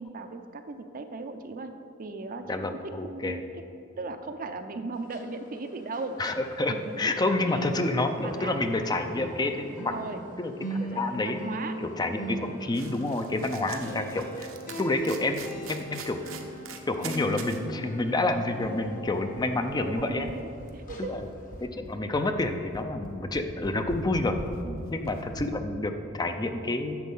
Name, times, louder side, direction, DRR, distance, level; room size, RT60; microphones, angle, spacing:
voice 1, 0.0-1.7 2.0-3.4 4.0-6.2 6.7-7.9 8.2-8.6 9.7-10.2 10.9-11.7 13.4-13.9 19.8-21.2 24.6-24.8, right 3 dB, 45° right, 7 dB, 0.6 m, -38 dB
voice 2, 2.5-3.4 6.2-10.0 10.4-11.4 11.8-14.5 14.8-16.2 16.9-20.3 21.1-21.3 21.6-24.4 24.9-27.0, left 2 dB, 20° left, 7 dB, 0.5 m, -29 dB
sound 1, 5.0-7.1 7.4-20.5 20.9-21.1 21.6-21.7, right 1 dB, 40° left, 1.1 m, -40 dB
sound 2, 12.7-17.6 18.0-18.1 18.3-25.4, right 3 dB, 75° right, 0.9 m, -43 dB
10.5 x 7.3 x 5.4 m, 2.6 s
head